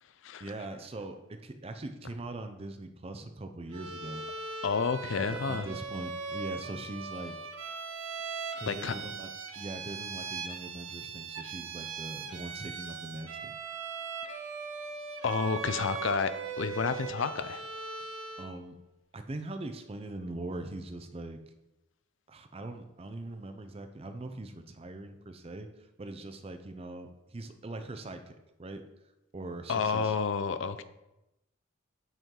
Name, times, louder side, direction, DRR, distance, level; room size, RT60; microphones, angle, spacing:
voice 1, 0.4-4.2 5.2-7.4 8.6-9.3 9.6-13.5 18.0-18.1 18.4-18.8 19.1-21.4 22.3-28.9 29.3-30.1, right 2 dB, 30° right, 8 dB, 0.5 m, -41 dB
Bowed string instrument, 3.7-18.6, right 5 dB, 75° right, 0.7 m, -40 dB
voice 2, 4.6-5.7 8.7-8.9 15.2-17.6 29.7-30.8, left 5 dB, 65° left, 12 dB, 0.4 m, -30 dB
7.9 x 4.5 x 3.7 m, 0.95 s
head